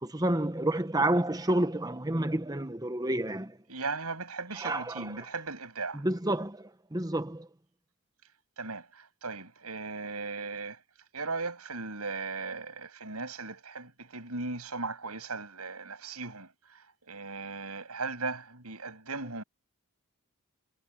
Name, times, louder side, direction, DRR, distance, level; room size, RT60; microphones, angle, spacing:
voice 1, 0.0-3.6 4.5-5.3 5.9-7.5, right 1 dB, 15° right, 1.1 m, -30 dB
voice 2, 3.7-6.0 8.6-10.8 11.1-19.4, right 3 dB, 85° right, 6.8 m, -37 dB
head